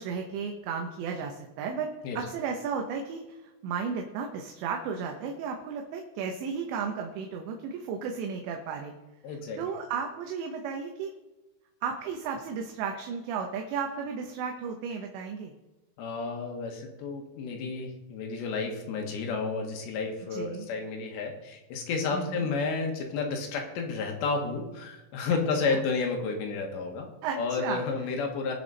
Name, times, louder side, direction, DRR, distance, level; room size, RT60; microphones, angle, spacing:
voice 1, 0.0-8.9 9.3-11.1 11.8-15.5 20.3-20.7 22.1-22.5 25.6-25.8 27.2-27.8, right 6 dB, 75° right, 2 dB, 3.1 m, -34 dB
voice 2, 9.2-9.6 16.0-27.1 27.4-28.5, left 4 dB, 70° left, 3 dB, 3.5 m, -31 dB
20.5 x 7.0 x 4.0 m, 1.1 s
omnidirectional pair, 5.5 m